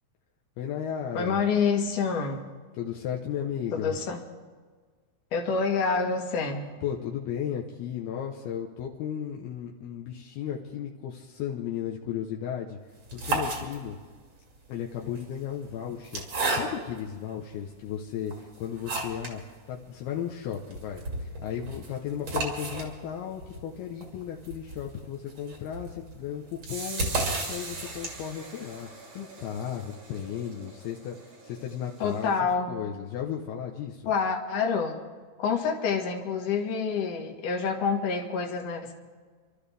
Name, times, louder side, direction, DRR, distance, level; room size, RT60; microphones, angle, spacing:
voice 1, 0.6-1.4 2.7-4.0 6.8-12.8 13.1-14.0 14.7-19.4 19.7-27.1 27.5-28.9 29.1-31.2 31.4-32.3 32.7-34.1, left 9 dB, 75° left, 0 dB, 2.9 m, -35 dB
voice 2, 1.1-2.4 3.7-4.2 5.3-6.8 32.0-32.7 34.1-35.0 35.4-38.9, left 5 dB, 60° left, 0 dB, 3.0 m, -27 dB
sound 1, 12.9-14.1 15.0-17.1 17.7-17.8 18.3-19.4 19.7-19.8 20.1-20.2 20.5-28.4, right 2 dB, 40° right, 3.5 m, -33 dB
sound 2, 26.7-32.3, right 3 dB, 80° right, 5.2 m, -43 dB
28.0 x 13.0 x 3.5 m, 1.5 s
omnidirectional pair, 4.7 m